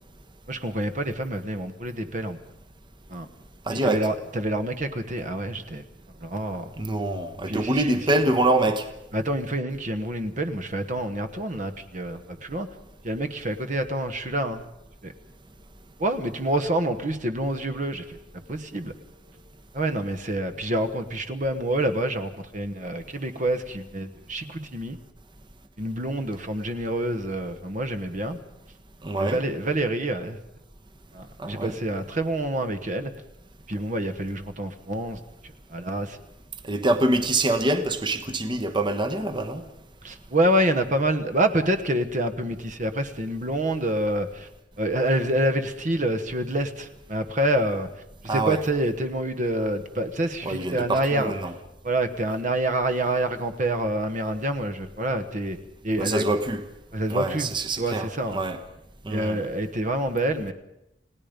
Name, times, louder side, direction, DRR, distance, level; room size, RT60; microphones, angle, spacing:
voice 1, 0.5-2.4 3.1-3.3 3.7-5.8 6.2-6.7 7.5-8.0 9.1-12.7 13.0-14.6 15.0-15.1 16.0-18.9 19.7-25.0 25.8-28.4 29.2-30.4 31.1-33.1 33.7-36.2 40.0-44.5 44.8-47.9 48.2-51.3 51.8-55.6 55.8-56.2 56.9-57.5 57.8-58.4 59.1-60.5, right 1 dB, 45° right, 9 dB, 1.3 m, -27 dB
voice 2, 3.7-4.0 6.8-8.9 29.0-29.4 31.4-31.7 36.6-39.6 48.3-48.6 50.4-51.5 56.0-56.6 57.1-58.6 59.1-59.4, right 2 dB, 25° right, 6 dB, 1.2 m, -25 dB
30.0 x 17.5 x 5.3 m, 0.86 s
head